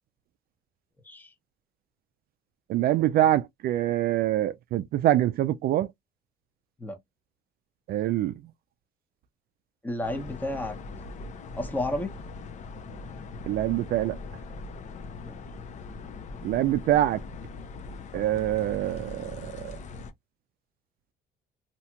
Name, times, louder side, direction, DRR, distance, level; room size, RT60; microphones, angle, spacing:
voice 1, 2.7-5.9 7.9-8.3 13.5-14.2 16.4-17.2 18.1-19.7, right 13 dB, 65° right, 0.4 m, -25 dB
voice 2, 9.8-10.8 11.5-12.2 15.2-15.4, left 1 dB, 10° left, 0.9 m, -32 dB
sound 1, 10.0-20.1, left 3 dB, 45° left, 0.6 m, -41 dB
2.8 x 2.8 x 2.2 m
cardioid pair, 110°, 17 cm